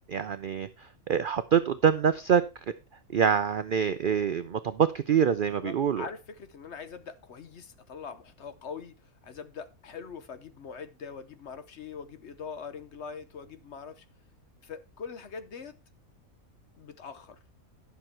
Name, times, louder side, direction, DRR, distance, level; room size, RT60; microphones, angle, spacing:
voice 1, 0.1-2.4 3.1-6.0, right 7 dB, 65° right, 0.5 m, -25 dB
voice 2, 5.5-14.0 14.6-15.8 16.8-17.4, left 6 dB, 55° left, 1.1 m, -43 dB
11.5 x 6.4 x 4.4 m
omnidirectional pair, 1.5 m